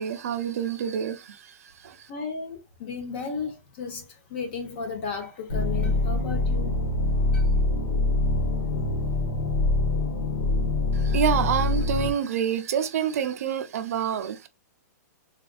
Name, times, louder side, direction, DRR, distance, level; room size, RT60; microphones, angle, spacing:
voice 1, 0.0-1.5 1.8-2.0 10.9-14.5, right 8 dB, 55° right, 0.5 m, -27 dB
voice 2, 2.1-6.8 7.3-7.4, left 5 dB, 35° left, 0.8 m, -34 dB
sound 1, 5.5-12.1, left 2 dB, 70° left, 0.8 m, -24 dB
3.5 x 2.5 x 2.3 m
hypercardioid pair, 170°, 10 cm